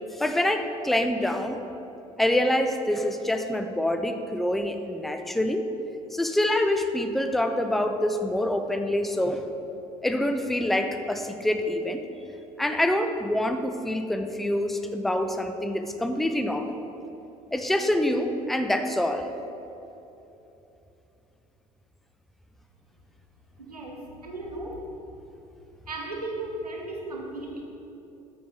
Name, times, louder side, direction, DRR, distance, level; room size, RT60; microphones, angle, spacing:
voice 1, 0.1-1.6 2.2-5.7 6.1-9.5 10.0-12.0 12.6-16.8 17.5-19.3, left 1 dB, ahead, 7 dB, 0.4 m, -26 dB
voice 2, 23.6-24.9 25.9-27.6, right 2 dB, 85° right, 0 dB, 0.8 m, -36 dB
8.4 x 5.8 x 3.8 m, 3.0 s
figure-of-eight pair, 60°, 19 cm